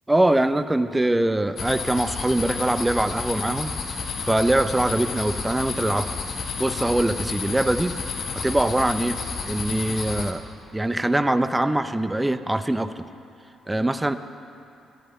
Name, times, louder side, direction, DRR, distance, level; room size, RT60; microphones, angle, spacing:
voice 1, 0.1-3.7 4.2-6.2 6.6-8.0 8.4-9.2 9.5-10.4 10.7-12.9 13.7-14.2, right 1 dB, 10° right, 11 dB, 0.6 m, -23 dB
sound 1, 1.6-10.3, left 5 dB, 60° left, 1.4 m, -31 dB
21.5 x 13.5 x 3.2 m, 2.6 s
supercardioid pair, 70°, 0 cm